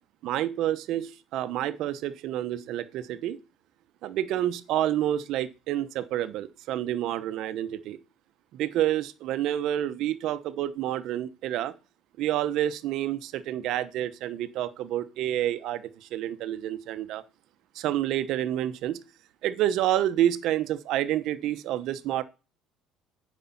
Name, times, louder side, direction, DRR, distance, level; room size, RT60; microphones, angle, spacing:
voice 1, 0.2-3.4 4.0-8.0 8.5-11.7 12.2-17.2 17.7-19.0 19.4-22.2, right 12 dB, 55° right, 0.8 m, -28 dB
9.2 x 5.4 x 5.8 m
cardioid pair, 160°, 0 cm